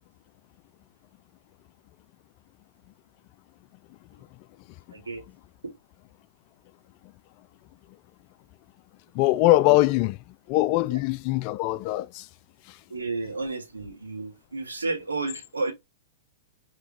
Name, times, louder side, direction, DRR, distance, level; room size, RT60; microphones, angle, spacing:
voice 1, 4.9-5.2 5.6-5.7 10.9-11.0 12.9-15.7, right 3 dB, 85° right, 1.7 m, -32 dB
voice 2, 9.1-10.2 10.5-12.3 12.7-12.8, left 17 dB, 40° left, 0.3 m, -22 dB
5.6 x 2.9 x 3.1 m
figure-of-eight pair, 110°, 0 cm